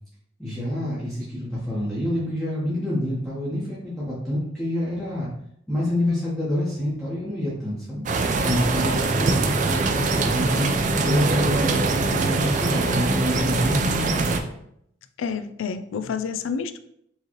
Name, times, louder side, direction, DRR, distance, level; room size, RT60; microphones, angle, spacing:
voice 1, 0.4-5.3 5.7-14.4, left 1 dB, ahead, -10 dB, 1.0 m, -27 dB
sound 1, 8.1-14.4, right 3 dB, 40° right, 0.3 m, -23 dB
voice 2, 15.2-16.8, left 6 dB, 80° left, 10 dB, 0.4 m, -29 dB
4.5 x 3.1 x 2.9 m, 0.72 s
head